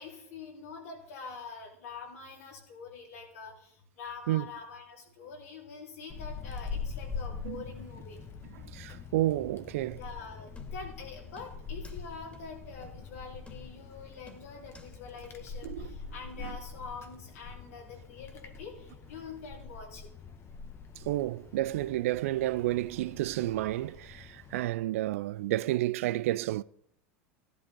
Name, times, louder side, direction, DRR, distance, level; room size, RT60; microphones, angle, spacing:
voice 1, 0.0-8.2 10.0-20.1, left 5 dB, 80° left, 4.4 m, -45 dB
Wind, 6.1-24.6, left 5 dB, 35° left, 1.4 m, -44 dB
voice 2, 8.5-10.0 15.6-16.0 16.4-16.5 21.0-26.6, right 15 dB, 75° right, 0.4 m, -31 dB
sound 1, 10.6-11.0 11.4-12.0 12.3-12.4 12.8-13.0 13.5-13.9 14.3-14.9 15.2-15.3, left 3 dB, 15° left, 2.4 m, -54 dB
15.0 x 11.5 x 3.8 m
hypercardioid pair, 90°, 8 cm